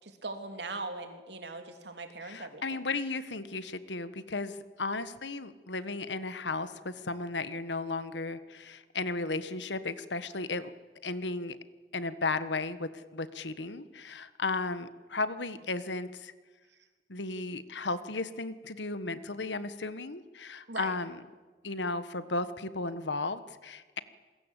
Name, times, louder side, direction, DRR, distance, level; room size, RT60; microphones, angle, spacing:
voice 1, 0.0-2.8 20.7-20.9, right 3 dB, 70° right, 6 dB, 3.4 m, -40 dB
voice 2, 2.2-10.7 11.0-11.6 11.9-16.3 17.1-21.2 21.6-24.0, left 3 dB, 80° left, 13 dB, 1.5 m, -35 dB
28.0 x 22.0 x 8.4 m, 1.3 s
head